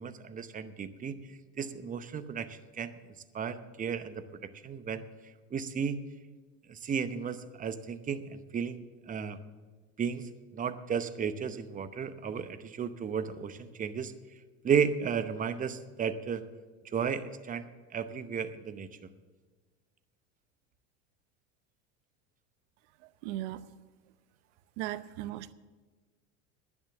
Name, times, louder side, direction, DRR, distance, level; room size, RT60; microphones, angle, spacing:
voice 1, 0.0-2.9 3.3-4.2 4.6-5.0 5.5-6.0 6.7-9.4 10.0-14.1 14.6-16.4 16.9-18.9, right 7 dB, 20° right, 12 dB, 0.8 m, -34 dB
voice 2, 23.2-23.6 24.8-25.5, right 14 dB, 70° right, 16 dB, 0.8 m, -37 dB
11.0 x 10.5 x 7.0 m, 1.4 s
supercardioid pair, 110°, 36 cm